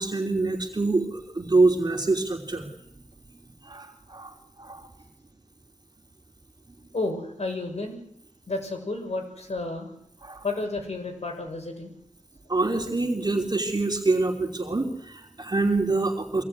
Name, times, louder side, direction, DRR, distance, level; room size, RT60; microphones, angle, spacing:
voice 1, 0.0-2.7 3.6-4.3 4.6-4.9 10.2-10.4 12.5-16.4, right 3 dB, 35° right, 2 dB, 3.1 m, -25 dB
voice 2, 6.9-8.0 8.5-9.9 10.4-11.9, left 2 dB, 60° left, 3 dB, 7.0 m, -31 dB
24.0 x 18.5 x 9.6 m, 0.72 s
wide cardioid pair, 90°, 12 cm